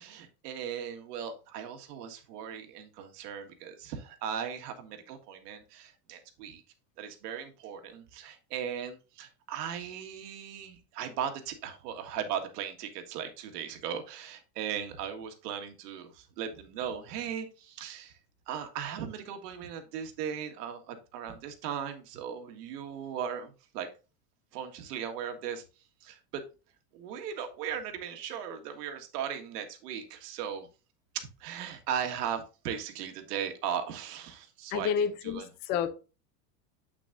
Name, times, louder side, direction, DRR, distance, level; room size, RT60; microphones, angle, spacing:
voice 1, 0.0-6.6 7.0-18.2 18.5-23.9 24.5-25.6 26.0-26.4 26.9-30.7 31.1-35.5, right 8 dB, 75° right, 1.8 m, -38 dB
voice 2, 34.7-35.9, left 7 dB, 20° left, 0.4 m, -30 dB
8.4 x 6.2 x 2.6 m
supercardioid pair, 160°, 48 cm